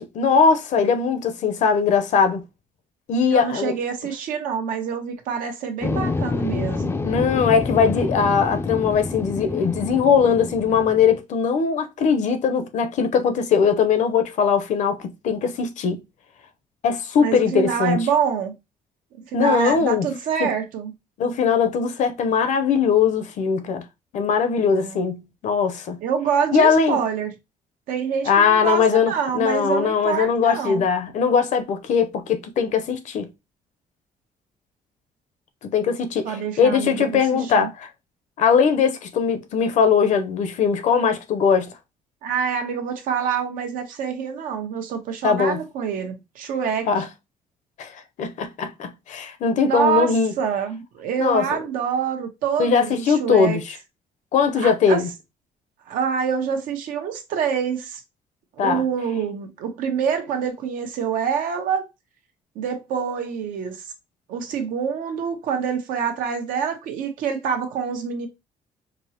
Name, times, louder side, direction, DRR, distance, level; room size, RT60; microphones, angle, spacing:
voice 1, 0.0-2.4 3.1-3.7 7.0-16.0 16.8-18.0 19.3-20.1 20.4-20.5 21.2-23.8 24.1-26.0 26.5-27.0 28.3-33.3 35.6-37.7 38.4-41.7 45.2-45.6 46.9-47.1 47.8-50.3 51.2-51.5 52.6-53.8 54.3-55.1 58.6-58.8, left 6 dB, 60° left, 0.7 m, -20 dB
voice 2, 3.3-6.9 17.2-18.5 19.3-20.9 24.7-25.0 26.0-27.3 27.9-30.8 36.2-37.7 42.2-46.9 49.6-53.6 54.5-55.0 55.9-58.0 58.6-61.8 62.5-63.9 64.3-68.3, right 7 dB, 85° right, 1.0 m, -26 dB
sound 1, 5.8-11.2, left 3 dB, 15° left, 0.4 m, -27 dB
5.1 x 2.1 x 2.8 m
cardioid pair, 125°, 14 cm